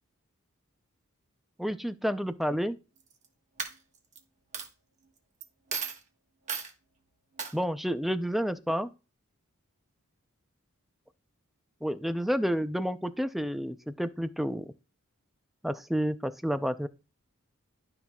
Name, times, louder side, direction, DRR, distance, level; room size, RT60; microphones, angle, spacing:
voice 1, 1.6-2.8 7.5-8.9 11.8-14.7 15.6-16.9, equal, ahead, 0.4 m, -30 dB
Coin (dropping), 3.0-3.2 3.6-4.2 4.5-4.7 5.4-5.5 5.7-6.0 6.5-6.7 7.4-7.5, right 6 dB, 35° right, 1.3 m, -34 dB
12.0 x 5.8 x 2.3 m
head